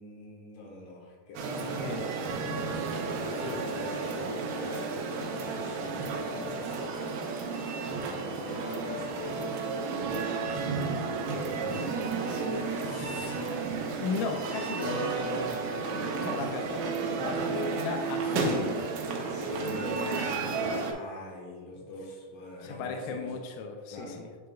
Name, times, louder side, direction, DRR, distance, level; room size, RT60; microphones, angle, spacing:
voice 1, 0.0-7.2 7.9-9.8 11.3-12.0 14.7-16.3 19.2-23.3 23.9-24.3, left 2 dB, 65° left, -3 dB, 2.7 m, -43 dB
sound 1, 1.4-20.9, right 4 dB, 90° right, 2.7 m, -32 dB
voice 2, 12.8-13.4 14.0-15.1 16.2-18.8 22.6-24.3, left 5 dB, 85° left, 4 dB, 1.8 m, -35 dB
9.1 x 4.8 x 2.3 m, 1.6 s
omnidirectional pair, 4.3 m